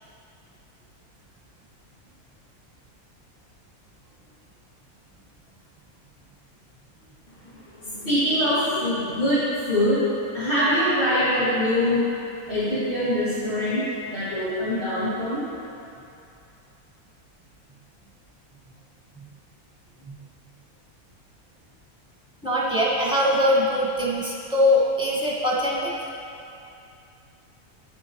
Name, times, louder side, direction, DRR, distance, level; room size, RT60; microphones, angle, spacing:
voice 1, 7.5-12.1 12.5-15.4, left 1 dB, 35° left, -15 dB, 2.5 m, -24 dB
voice 2, 22.4-25.9, left 1 dB, 5° right, -5 dB, 1.3 m, -22 dB
9.7 x 9.5 x 3.1 m, 2.7 s
omnidirectional pair, 1.5 m